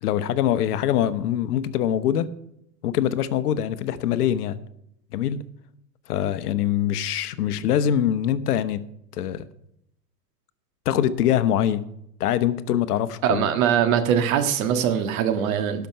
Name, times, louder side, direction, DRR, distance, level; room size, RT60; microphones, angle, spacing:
voice 1, 0.0-2.3 2.8-4.6 5.1-5.4 6.1-8.8 9.1-9.4 10.8-11.8 12.2-13.5, left 10 dB, 65° left, 1.0 m, -23 dB
voice 2, 13.2-15.9, right 9 dB, 55° right, 1.7 m, -22 dB
12.0 x 5.9 x 7.6 m
hypercardioid pair, 120°, 49 cm